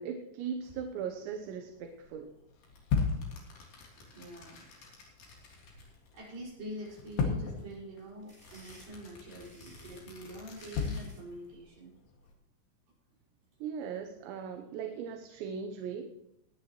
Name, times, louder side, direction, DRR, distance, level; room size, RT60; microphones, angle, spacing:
voice 1, 0.0-2.4 13.6-16.1, right 7 dB, 80° right, 5 dB, 3.1 m, -38 dB
sound 1, 0.6-12.3, left 5 dB, 80° left, 4.5 m, -39 dB
sound 2, 2.6-6.4 6.6-7.7 8.3-11.0, left 3 dB, 60° left, 5.0 m, -55 dB
voice 2, 4.0-4.6 6.1-11.9, equal, 50° right, -5 dB, 6.9 m, -45 dB
sound 3, 8.0-11.3, equal, 10° right, 4.1 m, -58 dB
19.5 x 10.5 x 3.1 m, 0.89 s
omnidirectional pair, 5.3 m